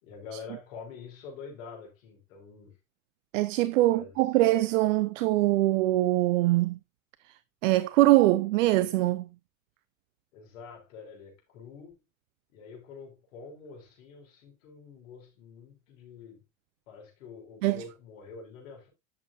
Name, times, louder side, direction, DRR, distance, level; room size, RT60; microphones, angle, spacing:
voice 1, 0.0-2.8 3.9-4.1 10.3-12.0 12.5-16.4 16.9-18.9, left 5 dB, 70° left, 5.3 m, -46 dB
voice 2, 3.3-6.8 7.6-9.3 17.6-17.8, right 16 dB, 65° right, 0.7 m, -23 dB
10.5 x 7.6 x 2.6 m
hypercardioid pair, 75°, 41 cm